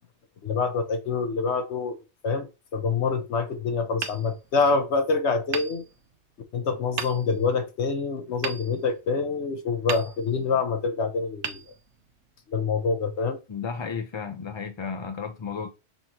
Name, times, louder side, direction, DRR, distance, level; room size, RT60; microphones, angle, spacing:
voice 1, 0.4-2.0 2.2-5.8 6.5-11.6 12.5-13.4, left 4 dB, 75° left, 1.0 m, -26 dB
Hammer, 4.0-5.0 5.5-6.4 7.0-7.6 8.4-9.4 9.9-10.6 11.4-12.4, right 8 dB, 85° right, 0.9 m, -37 dB
voice 2, 13.5-15.7, left 6 dB, 50° left, 0.3 m, -33 dB
5.6 x 2.9 x 2.7 m
omnidirectional pair, 1.1 m